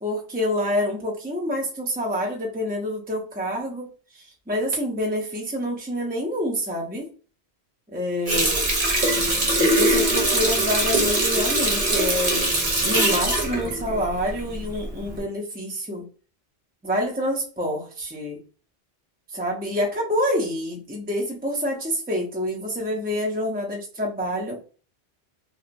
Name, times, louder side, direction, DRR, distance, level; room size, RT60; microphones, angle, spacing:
voice 1, 0.0-3.9 4.1-7.1 7.9-8.7 9.6-12.4 12.8-16.1 16.8-18.4 19.3-24.6, equal, 15° right, -1 dB, 0.4 m, -27 dB
Water tap faucet, 8.3-14.6 15.0-15.2, right 1 dB, 40° right, 0.8 m, -22 dB
2.9 x 2.6 x 2.5 m, 0.37 s
omnidirectional pair, 1.1 m